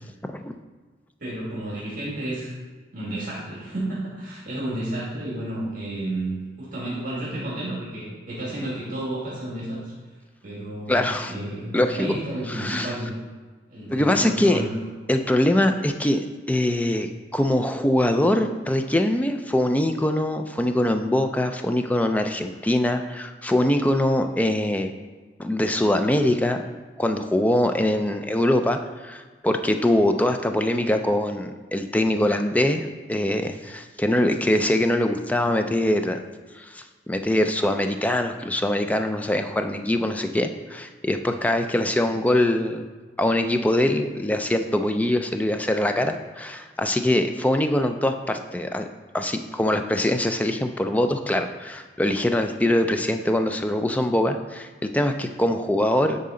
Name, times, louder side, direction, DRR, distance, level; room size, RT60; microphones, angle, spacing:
voice 1, 0.2-0.5 10.9-11.3 11.7-12.1 12.5-12.9 13.9-14.6 15.1-16.2 16.5-24.9 25.4-26.6 27.0-36.2 36.6-42.9 43.2-48.8 49.1-56.2, left 1 dB, 10° left, 6 dB, 0.3 m, -23 dB
voice 2, 1.2-2.5 2.9-9.8 10.4-13.1 13.7-14.7, right 1 dB, 45° right, -7 dB, 2.0 m, -31 dB
9.3 x 4.1 x 3.8 m, 1.4 s
head